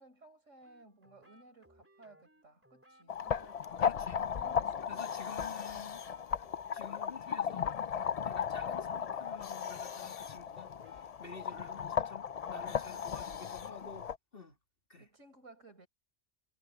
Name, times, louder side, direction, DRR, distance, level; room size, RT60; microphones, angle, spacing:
voice 1, 0.0-3.7 4.1-5.8 12.6-13.3 15.0-15.9, right 2 dB, 75° right, 4.8 m, -58 dB
sound 1, 0.6-13.8, right 1 dB, 10° right, 3.3 m, -65 dB
sound 2, 3.1-14.2, left 7 dB, 65° left, 0.3 m, -36 dB
voice 2, 3.8-4.2 4.9-6.0 6.7-7.7 8.0-14.6 14.9-15.1, left 5 dB, 45° left, 2.8 m, -51 dB
omnidirectional pair, 1.3 m